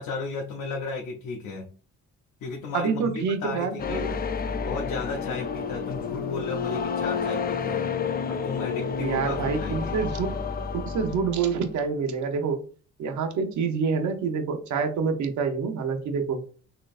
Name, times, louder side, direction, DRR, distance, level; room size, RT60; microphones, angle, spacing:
voice 1, 0.0-1.7 2.4-4.1 4.6-7.9 8.3-10.0, left 4 dB, 80° left, 1 dB, 0.8 m, -34 dB
voice 2, 2.7-4.2 9.0-10.4 10.7-12.6 13.0-16.4, right 5 dB, 70° right, 6 dB, 0.9 m, -27 dB
sound 1, 3.8-11.7, left 6 dB, 30° left, 0.4 m, -30 dB
4.2 x 3.0 x 2.5 m, 0.39 s
cardioid pair, 90°, 30 cm